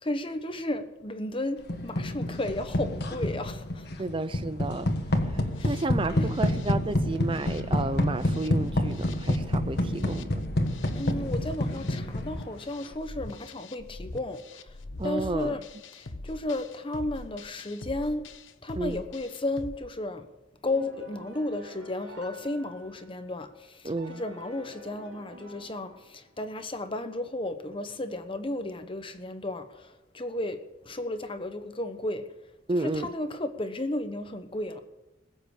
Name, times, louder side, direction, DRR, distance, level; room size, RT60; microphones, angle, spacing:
voice 1, 0.0-3.9 5.6-5.8 6.1-6.3 10.9-14.8 15.0-15.6 15.9-18.2 18.6-20.3 20.6-32.3 32.7-34.8, left 1 dB, 25° left, 9 dB, 1.1 m, -34 dB
sound 1, 1.7-12.6, left 1 dB, 55° left, 1.6 m, -28 dB
voice 2, 4.0-4.9 5.3-10.3 15.0-15.5 18.8-19.0 23.8-24.2 32.7-33.1, right 2 dB, 25° right, 12 dB, 0.5 m, -31 dB
sound 2, 5.0-19.7, left 2 dB, 75° left, 1.0 m, -42 dB
sound 3, 20.7-23.3 24.0-26.4, equal, 65° right, 4.1 m, -49 dB
20.5 x 7.9 x 8.2 m, 1.0 s
head